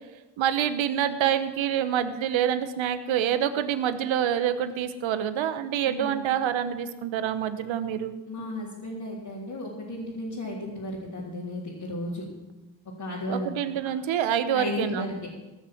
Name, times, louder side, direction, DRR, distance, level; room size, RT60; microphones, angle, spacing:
voice 1, 0.4-8.1 13.3-15.1, right 9 dB, 85° right, 11 dB, 1.0 m, -26 dB
voice 2, 5.8-6.3 8.3-12.2 13.0-13.6 14.5-15.3, left 1 dB, 55° left, -6 dB, 3.7 m, -34 dB
17.0 x 6.5 x 7.8 m, 1.1 s
supercardioid pair, 55°, 46 cm